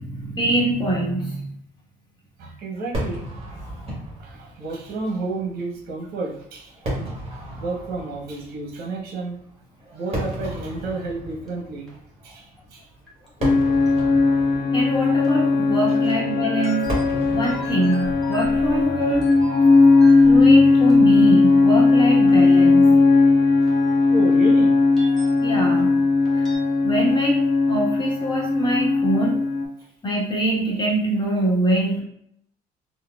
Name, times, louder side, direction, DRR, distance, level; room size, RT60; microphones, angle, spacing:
voice 1, 0.0-1.5 14.7-16.9 17.3-19.3 20.2-22.9 25.4-25.9 26.3-26.5 26.8-27.4 27.7-29.4 30.0-32.0, right 1 dB, 25° left, -2 dB, 1.0 m, -24 dB
voice 2, 2.4-3.6 4.2-6.8 7.6-9.4 9.9-12.9 16.0-16.1 24.1-24.7, right 3 dB, 65° right, -1 dB, 0.8 m, -31 dB
Fireworks, 2.9-20.3, right 1 dB, 35° right, 1.3 m, -36 dB
sound 1, 10.3-10.4 11.5-11.6 11.9-12.0 12.6-12.7 13.1-13.9 14.1-14.2 15.2-15.3 16.3-21.2 21.5-21.6 22.3-22.4 22.9-23.0 23.3-23.4 23.7-23.8 24.4-24.5 25.0-25.5 26.2-26.6, left 1 dB, ahead, 1.1 m, -37 dB
sound 2, 13.4-29.6, left 3 dB, 50° left, 0.6 m, -17 dB
4.0 x 2.1 x 2.2 m, 0.73 s
cardioid pair, 110°, 17 cm